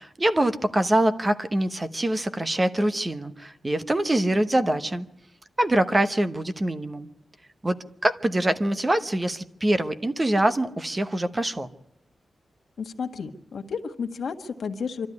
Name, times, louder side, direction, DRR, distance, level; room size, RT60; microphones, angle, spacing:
voice 1, 0.0-5.1 5.6-7.1 7.6-11.7, right 1 dB, 20° right, 9 dB, 1.0 m, -24 dB
voice 2, 12.8-15.1, left 5 dB, 70° left, 6 dB, 1.5 m, -32 dB
26.5 x 13.0 x 9.6 m, 0.83 s
wide cardioid pair, 140°, 0 cm